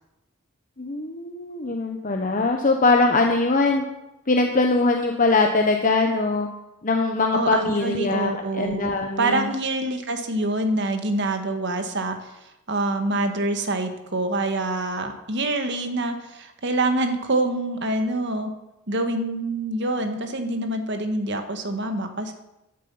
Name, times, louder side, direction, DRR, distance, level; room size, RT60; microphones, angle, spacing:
voice 1, 0.8-3.8 4.3-6.5 6.8-9.5, left 3 dB, 35° left, 3 dB, 1.0 m, -22 dB
voice 2, 7.3-8.9 9.2-12.3 12.7-18.5 18.9-22.3, right 2 dB, 50° right, 6 dB, 1.7 m, -26 dB
15.0 x 11.0 x 5.6 m, 0.92 s
head